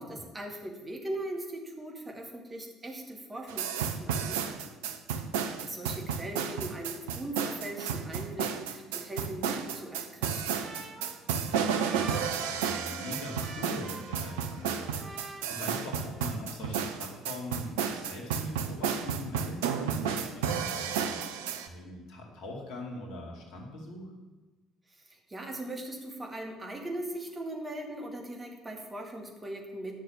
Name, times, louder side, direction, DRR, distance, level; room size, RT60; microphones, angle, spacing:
voice 1, 0.0-4.4 5.6-10.7 24.9-30.0, right 1 dB, 20° right, 1 dB, 2.2 m, -39 dB
sound 1, 3.5-21.7, right 7 dB, 70° right, 0.7 m, -32 dB
Trumpet, 9.7-16.5, right 2 dB, 35° right, 1.8 m, -47 dB
voice 2, 11.4-21.3 21.6-24.1, left 1 dB, 60° left, 1 dB, 2.2 m, -42 dB
10.5 x 6.5 x 7.4 m, 1.2 s
figure-of-eight pair, 55°, 0 cm